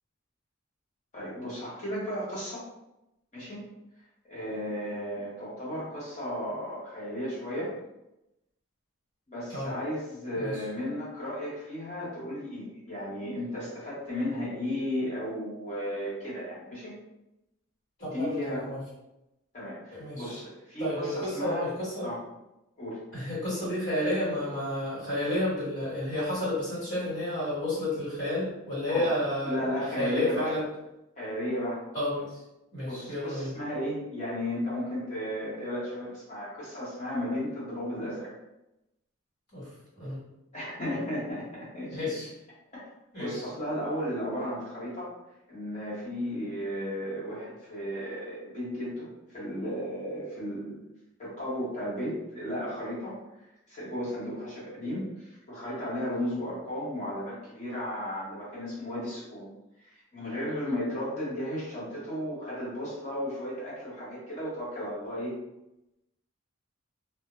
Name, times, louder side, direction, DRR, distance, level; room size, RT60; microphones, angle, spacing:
voice 1, 1.1-2.6 3.3-3.6 4.2-7.7 9.3-16.9 18.0-18.7 19.5-21.7 22.0-22.2 22.8-23.0 28.9-29.1 29.4-30.5 31.2-31.8 32.8-38.3 40.5-42.1 42.7-42.8 43.2-45.1 45.5-50.8 51.2-53.2 53.7-59.5 59.8-65.4, equal, 35° left, -8 dB, 0.8 m, -34 dB
voice 2, 18.0-18.8 19.9-20.3 20.8-22.1 23.1-29.6 29.9-30.6 31.9-32.4 32.7-33.5 39.5-39.7 40.0-40.2 41.9-42.3 43.1-43.4, left 1 dB, 55° left, -9 dB, 1.3 m, -31 dB
2.2 x 2.0 x 2.9 m, 0.90 s
head